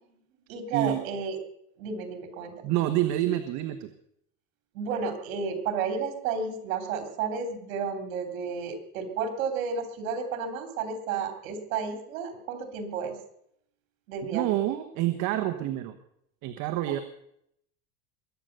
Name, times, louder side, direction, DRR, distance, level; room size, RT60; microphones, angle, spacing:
voice 1, 0.5-1.4 1.8-2.7 4.7-13.2 14.1-14.5 16.9-17.0, right 5 dB, 75° right, 6 dB, 3.4 m, -32 dB
voice 2, 2.6-3.9 14.3-15.9 16.4-17.0, right 13 dB, 45° right, 7 dB, 1.2 m, -27 dB
22.0 x 8.9 x 6.8 m, 0.73 s
supercardioid pair, 155°, 41 cm